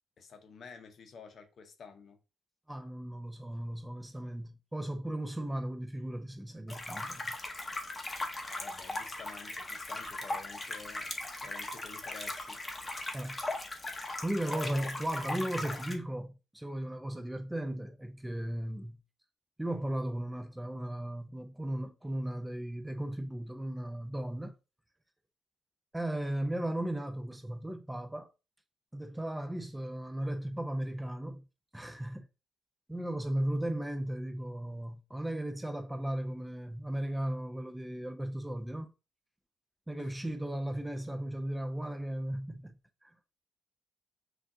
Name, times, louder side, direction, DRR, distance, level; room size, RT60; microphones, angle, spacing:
voice 1, 0.2-2.2 8.4-12.6 14.4-14.9 40.0-40.1, left 5 dB, 55° left, 0.8 m, -49 dB
voice 2, 2.7-7.4 13.0-13.4 14.2-19.0 19.6-24.5 25.9-28.3 28.9-31.4 31.7-32.3 32.9-38.9 39.9-42.7 43.0-43.1, right 1 dB, 10° right, 0.5 m, -36 dB
sound 1, 6.7-15.9, left 2 dB, 20° left, 0.8 m, -39 dB
5.9 x 2.5 x 2.6 m
cardioid pair, 90°, 0 cm